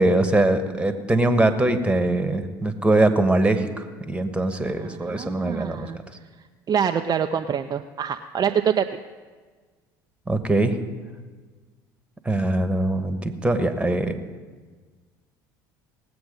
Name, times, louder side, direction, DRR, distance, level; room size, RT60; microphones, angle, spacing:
voice 1, 0.0-3.7 4.0-5.9 10.3-10.7 12.2-14.2, right 2 dB, 10° right, 8 dB, 1.4 m, -22 dB
voice 2, 4.7-6.0 6.7-9.0, right 8 dB, 35° right, 6 dB, 0.5 m, -25 dB
18.5 x 7.9 x 5.3 m, 1.4 s
hypercardioid pair, 70°, 11 cm